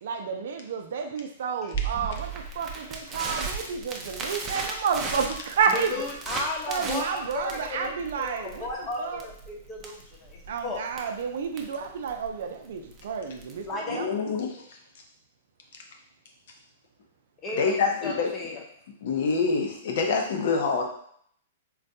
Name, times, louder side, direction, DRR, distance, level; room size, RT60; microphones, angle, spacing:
voice 1, 0.0-5.9 6.7-8.7 9.0-9.3 10.5-14.1, right 6 dB, 70° right, 5 dB, 0.4 m, -30 dB
Crackle, 1.7-13.7, right 4 dB, 25° right, 0.5 m, -36 dB
voice 2, 5.7-10.8 13.7-14.0 17.4-18.6, left 3 dB, 30° left, -1 dB, 0.8 m, -34 dB
voice 3, 13.9-14.6 17.6-18.3 19.0-20.8, left 4 dB, 65° left, 2 dB, 0.6 m, -26 dB
3.8 x 2.2 x 2.7 m, 0.65 s
hypercardioid pair, 135°, 0 cm